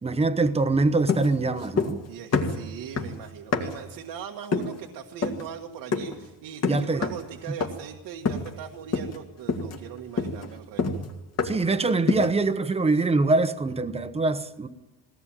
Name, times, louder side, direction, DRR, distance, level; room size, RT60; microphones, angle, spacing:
voice 1, 0.0-2.0 6.6-7.0 11.4-14.7, right 3 dB, 15° right, 1.1 m, -24 dB
sound 1, 1.1-2.1 2.3-3.9 4.5-4.8 5.2-5.5 5.9-6.2 6.6-7.3 7.6-7.9 8.3-8.6 8.9-9.2 9.5-11.7 12.1-12.4, left 4 dB, 40° left, 2.2 m, -28 dB
voice 2, 2.1-10.8, right 8 dB, 75° right, 1.7 m, -40 dB
22.0 x 18.0 x 9.1 m
cardioid pair, 160°, 40 cm